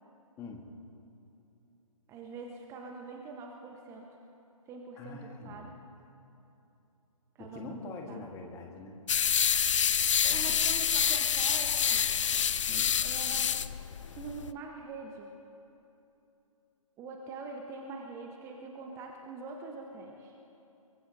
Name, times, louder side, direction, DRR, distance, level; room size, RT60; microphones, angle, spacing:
voice 1, 0.4-0.7 5.0-5.7 7.4-9.0 10.2-10.6 12.7-12.9, left 3 dB, 15° left, 2 dB, 1.4 m, -44 dB
voice 2, 2.1-4.1 4.7-5.7 7.3-7.8 8.1-8.3 10.3-12.1 13.0-13.5 14.1-15.3 17.0-20.4, right 4 dB, 15° right, 2 dB, 1.0 m, -44 dB
sound 1, 9.1-14.5, left 8 dB, 55° left, 0.5 m, -27 dB
23.0 x 22.0 x 2.7 m, 2.9 s
figure-of-eight pair, 135°, 19 cm